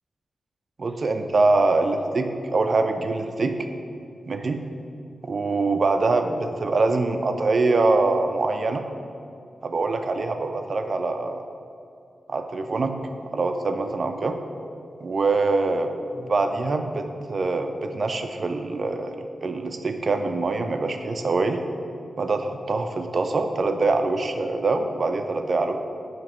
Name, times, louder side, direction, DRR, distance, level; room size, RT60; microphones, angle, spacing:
voice 1, 0.8-3.6 4.3-4.6 5.2-8.8 9.6-11.4 12.3-12.9 13.2-14.4 15.0-19.1 19.4-21.6 22.2-25.8, right 3 dB, 50° right, 6 dB, 0.4 m, -24 dB
6.0 x 2.9 x 5.6 m, 2.5 s
wide cardioid pair, 95°, 0 cm